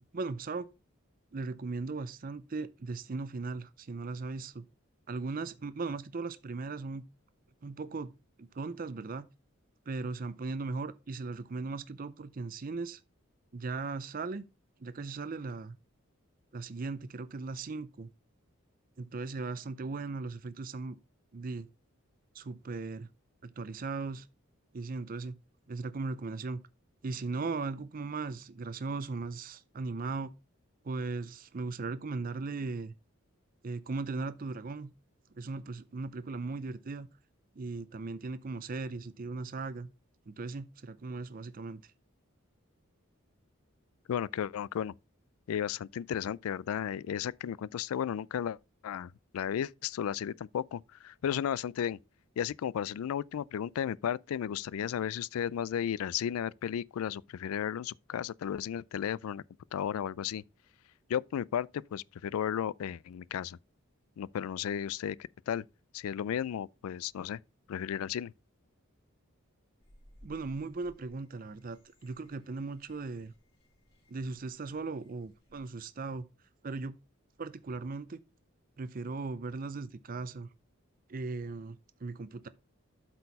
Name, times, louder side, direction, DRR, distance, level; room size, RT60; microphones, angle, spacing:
voice 1, 0.1-0.7 1.3-4.7 5.1-7.0 7.6-8.1 8.4-9.3 9.9-13.0 13.5-14.4 14.8-15.8 16.5-18.1 19.0-21.0 21.3-21.7 22.3-23.1 23.4-24.3 24.7-25.4 25.7-26.6 27.0-30.3 30.8-32.9 33.6-34.9 35.4-37.1 37.6-39.9 40.3-41.9 70.2-73.3 74.1-76.3 76.6-77.0 77.4-78.2 78.8-80.5 81.1-82.5, right 3 dB, 40° right, 0.5 m, -38 dB
voice 2, 44.1-44.9 45.5-48.6 48.8-52.0 52.4-59.4 59.7-60.4 61.1-63.6 64.2-65.2 65.5-65.6 65.9-67.4 67.7-68.3, left 9 dB, 80° left, 0.3 m, -34 dB
sound 1, 69.8-75.7, equal, 25° left, 3.1 m, -61 dB
8.1 x 4.5 x 5.2 m
head